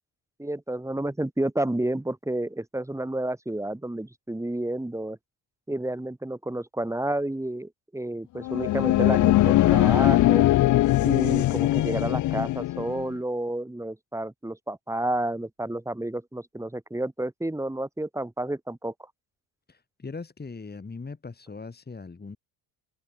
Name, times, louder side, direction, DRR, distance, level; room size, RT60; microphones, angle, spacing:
voice 1, 0.4-5.2 5.7-10.5 11.0-18.9, right 1 dB, 5° right, 4.0 m, -30 dB
sound 1, 8.4-13.0, left 15 dB, 40° left, 0.4 m, -21 dB
voice 2, 19.7-22.4, left 4 dB, 20° left, 4.9 m, -40 dB
cardioid pair, 120°, 48 cm